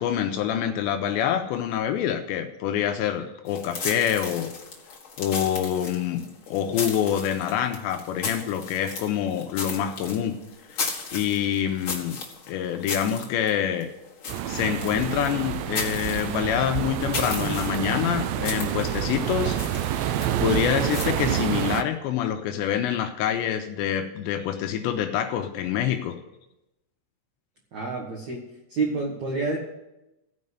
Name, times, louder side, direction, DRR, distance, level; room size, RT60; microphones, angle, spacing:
voice 1, 0.0-4.5 5.2-10.4 10.7-12.2 12.5-13.9 14.5-19.6 19.9-20.1 20.4-26.1, left 9 dB, 85° left, 5 dB, 2.7 m, -26 dB
sound 1, 3.5-21.1, left 4 dB, 60° left, 1.3 m, -36 dB
sound 2, 14.3-21.8, right 11 dB, 85° right, 2.5 m, -28 dB
voice 2, 27.7-28.4 28.7-29.6, right 3 dB, 60° right, -2 dB, 1.9 m, -28 dB
15.5 x 5.4 x 8.0 m, 0.92 s
omnidirectional pair, 5.7 m